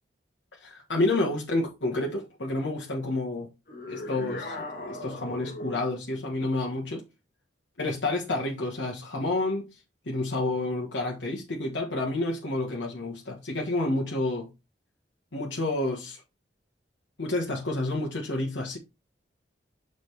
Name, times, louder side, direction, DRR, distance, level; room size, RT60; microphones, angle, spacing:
voice 1, 0.6-3.5 3.8-7.0 7.8-9.7 10.0-14.5 15.3-16.2 17.2-18.8, left 2 dB, 90° left, 1.5 m, -29 dB
sound 1, 3.7-6.0, left 2 dB, 55° left, 2.2 m, -38 dB
6.7 x 5.0 x 3.4 m
head